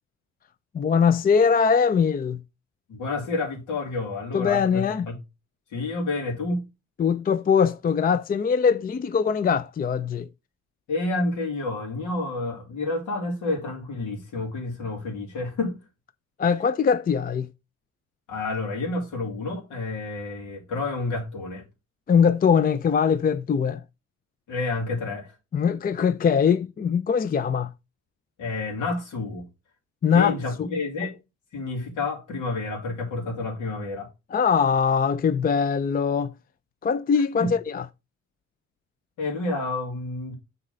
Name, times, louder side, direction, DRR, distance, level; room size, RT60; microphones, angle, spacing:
voice 1, 0.7-2.4 4.3-5.1 7.0-10.3 16.4-17.5 22.1-23.8 25.5-27.7 30.0-30.7 34.3-36.3 36.8-37.8, left 6 dB, 30° left, 0.4 m, -22 dB
voice 2, 2.9-5.1 5.7-6.7 10.9-15.8 18.3-21.6 24.5-25.3 28.4-29.5 30.1-31.2 31.5-34.1 37.4-37.5 39.2-40.3, left 2 dB, 80° left, 2.6 m, -29 dB
7.2 x 4.0 x 5.5 m
cardioid pair, 90°, 30 cm